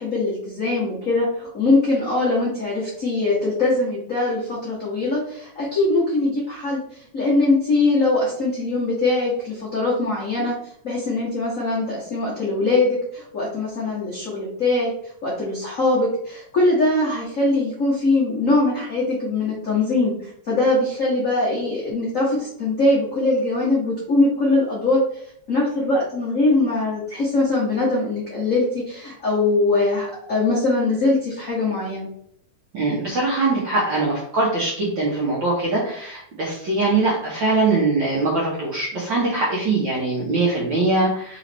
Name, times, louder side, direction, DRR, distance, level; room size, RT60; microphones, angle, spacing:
voice 1, 0.0-6.8 7.1-10.5 10.8-14.9 15.2-32.1, left 2 dB, 70° left, -7 dB, 0.7 m, -22 dB
voice 2, 32.7-41.4, right 3 dB, 65° right, -5 dB, 1.1 m, -22 dB
4.1 x 3.9 x 3.3 m, 0.69 s
omnidirectional pair, 3.4 m